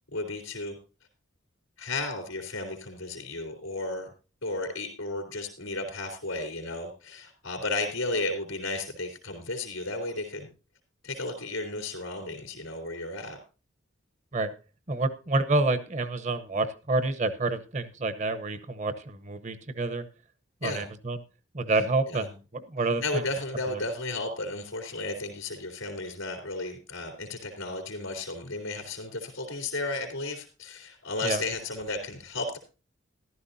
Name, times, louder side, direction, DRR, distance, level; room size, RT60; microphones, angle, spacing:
voice 1, 0.1-0.7 1.8-4.1 4.4-10.5 11.0-13.4 20.6-20.8 22.1-22.3 23.0-32.6, left 2 dB, 90° left, 1 dB, 3.4 m, -34 dB
voice 2, 14.9-20.0 20.6-21.2 21.5-23.2 23.7-23.8 31.2-31.4, right 2 dB, 35° right, 13 dB, 0.9 m, -28 dB
14.0 x 12.0 x 2.7 m, 0.33 s
head